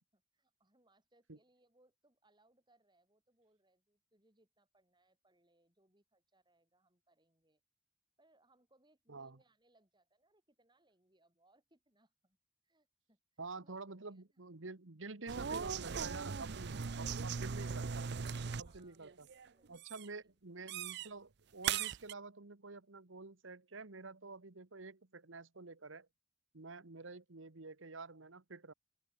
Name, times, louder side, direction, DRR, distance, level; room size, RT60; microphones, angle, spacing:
voice 1, 0.1-7.6 8.2-12.4 12.6-14.4 18.6-19.2 19.5-19.9, right 2 dB, 25° right, 6.4 m, -73 dB
voice 2, 13.4-18.0 18.6-19.3 19.7-26.1 26.5-28.7, right 3 dB, 85° right, 1.4 m, -49 dB
sound 1, 15.3-18.8 19.0-19.5 19.8-20.1 20.7-21.1 21.6-22.1, right 6 dB, 60° right, 0.6 m, -39 dB
open air
head